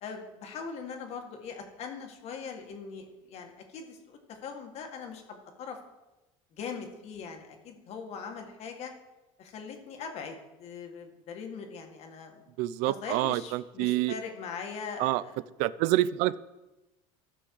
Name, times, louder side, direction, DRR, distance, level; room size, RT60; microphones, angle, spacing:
voice 1, 0.0-5.8 6.6-8.9 9.4-12.4 12.8-15.4, left 5 dB, 55° left, 4 dB, 1.9 m, -41 dB
voice 2, 12.6-14.1 15.0-15.2 15.6-16.4, right 16 dB, 75° right, 19 dB, 0.4 m, -27 dB
14.5 x 6.2 x 4.8 m, 1.0 s
cardioid pair, 130°, 13 cm